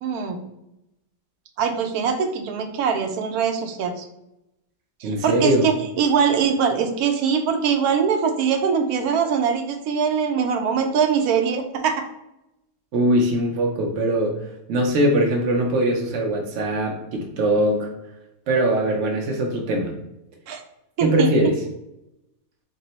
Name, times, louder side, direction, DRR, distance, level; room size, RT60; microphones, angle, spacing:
voice 1, 0.0-0.4 1.6-4.0 5.0-12.0 20.5-20.6 21.0-21.3, right 6 dB, 90° right, 5 dB, 1.1 m, -22 dB
voice 2, 5.0-5.7 12.9-14.4 14.7-17.9 18.5-19.9 21.0-21.5, right 1 dB, 65° right, 0 dB, 0.8 m, -21 dB
3.7 x 2.0 x 4.0 m, 0.87 s
omnidirectional pair, 1.5 m